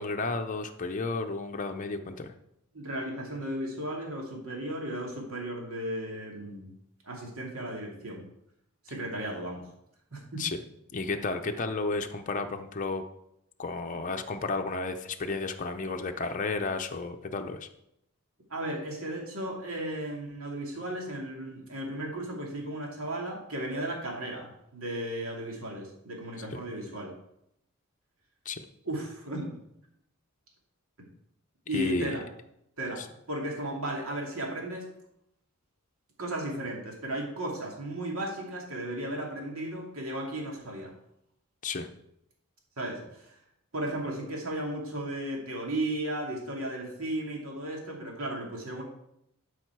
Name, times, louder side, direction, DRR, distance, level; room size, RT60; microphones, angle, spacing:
voice 1, 0.0-2.3 10.4-10.6 10.9-13.0 13.6-17.7 26.5-26.6 28.5-28.6 31.7-32.2 41.6-41.9, left 3 dB, 35° left, 5 dB, 0.6 m, -32 dB
voice 2, 2.7-6.7 7.1-8.3 8.8-9.6 10.1-10.4 18.5-27.1 28.9-29.5 31.7-32.3 32.8-34.9 36.2-40.9 42.8-43.4 43.7-48.8, right 1 dB, 75° right, -1 dB, 2.6 m, -35 dB
12.5 x 4.9 x 4.6 m, 0.79 s
head